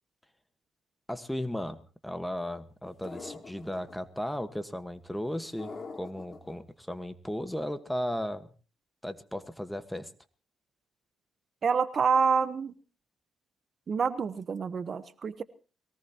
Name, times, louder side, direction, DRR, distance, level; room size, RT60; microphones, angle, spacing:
voice 1, 1.1-8.5 9.0-10.1, equal, 5° left, 10 dB, 1.5 m, -35 dB
sound 1, 3.0-4.0 5.6-6.5, left 4 dB, 35° left, 4.2 m, -43 dB
voice 2, 11.6-12.7 13.9-15.4, right 6 dB, 45° right, 13 dB, 1.0 m, -27 dB
22.5 x 18.0 x 3.0 m, 0.37 s
cardioid pair, 90°, 0 cm